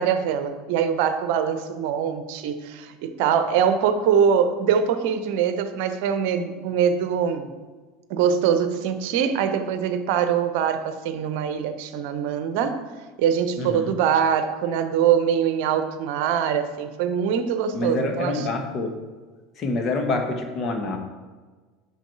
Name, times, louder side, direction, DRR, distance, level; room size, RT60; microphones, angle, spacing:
voice 1, 0.0-7.5 8.1-12.8 13.2-18.4, right 8 dB, 55° right, 10 dB, 0.8 m, -23 dB
voice 2, 13.6-14.0 17.7-18.9 19.6-21.0, left 3 dB, 40° left, 4 dB, 1.4 m, -26 dB
9.2 x 6.2 x 4.7 m, 1.4 s
figure-of-eight pair, 75°, 0 cm